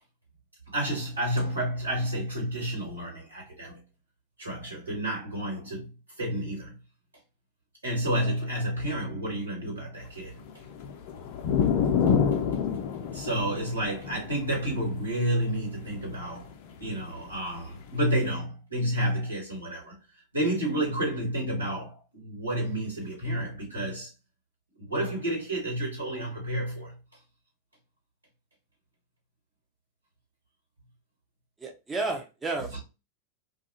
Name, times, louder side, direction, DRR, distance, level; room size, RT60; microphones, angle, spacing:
voice 1, 0.7-3.8 4.4-5.9 6.2-6.8 7.8-10.3 13.1-16.5 16.8-20.0 20.3-24.1 24.9-26.9, right 1 dB, 80° right, 1.3 m, -30 dB
sound 1, 10.4-17.0 17.9-18.0, left 7 dB, 45° left, 0.4 m, -28 dB
voice 2, 31.6-32.8, right 3 dB, 15° right, 0.5 m, -32 dB
2.3 x 2.3 x 2.8 m
figure-of-eight pair, 90°, 0 cm